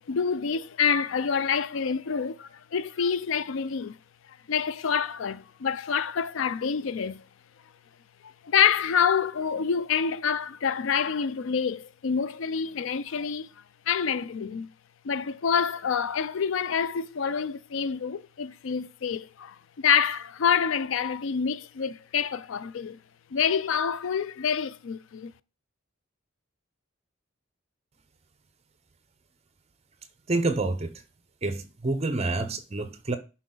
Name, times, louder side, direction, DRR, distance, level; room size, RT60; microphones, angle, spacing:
voice 1, 0.0-4.0 4.3-7.2 8.2-13.5 13.9-14.7 15.0-23.0 23.3-25.3, left 7 dB, 75° left, 0.4 m, -27 dB
voice 2, 30.3-31.0 31.4-33.2, right 2 dB, 30° right, 0.7 m, -28 dB
10.5 x 4.3 x 3.9 m
head